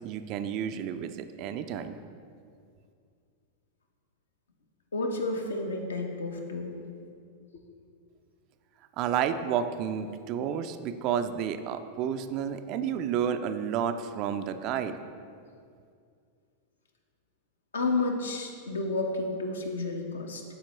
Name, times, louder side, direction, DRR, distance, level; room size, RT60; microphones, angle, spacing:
voice 1, 0.0-2.0 9.0-15.0, right 8 dB, 40° right, 9 dB, 0.3 m, -31 dB
voice 2, 4.9-6.7 7.5-7.6 17.7-20.4, left 3 dB, 70° left, 3 dB, 0.8 m, -31 dB
11.5 x 4.4 x 2.9 m, 2.3 s
figure-of-eight pair, 90°, 0 cm